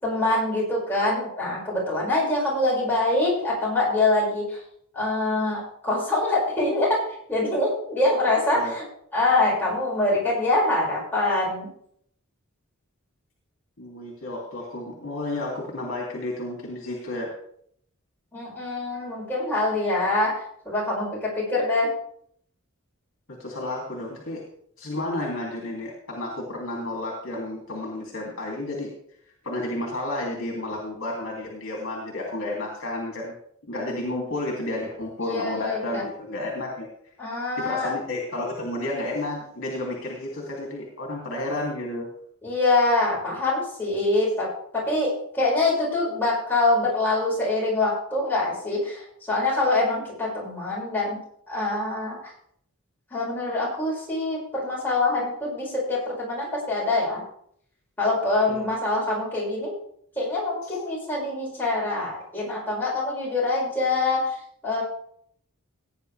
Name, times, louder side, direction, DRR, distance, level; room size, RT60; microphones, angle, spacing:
voice 1, 0.0-4.6 4.9-7.0 7.3-8.8 9.1-11.7 18.3-21.9 35.2-36.0 37.2-37.9 42.4-51.2 51.5-52.2 53.1-57.2 58.0-59.7 60.2-64.4 64.6-64.8, left 2 dB, 10° left, -6 dB, 5.8 m, -24 dB
voice 2, 13.8-17.3 23.3-24.4 24.8-28.9 29.4-33.3 33.7-36.9 37.6-42.1 58.5-58.7 60.6-60.8, left 2 dB, 55° left, -1 dB, 2.8 m, -31 dB
17.5 x 9.7 x 3.4 m, 0.66 s
head